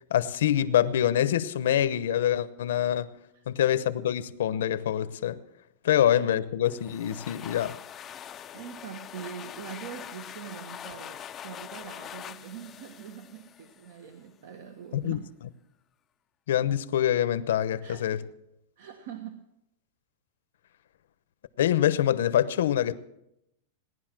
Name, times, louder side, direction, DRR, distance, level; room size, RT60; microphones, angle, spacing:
voice 1, 0.1-3.1 3.5-5.4 5.8-7.8 14.9-15.2 16.5-18.2 21.6-22.9, left 11 dB, 85° left, 0.8 m, -25 dB
sound 1, 6.6-14.1, left 9 dB, 20° left, 0.4 m, -43 dB
voice 2, 8.5-15.3 17.8-18.2 18.8-19.4, right 8 dB, 65° right, 1.3 m, -43 dB
18.0 x 11.0 x 6.1 m
supercardioid pair, 160°, 0 cm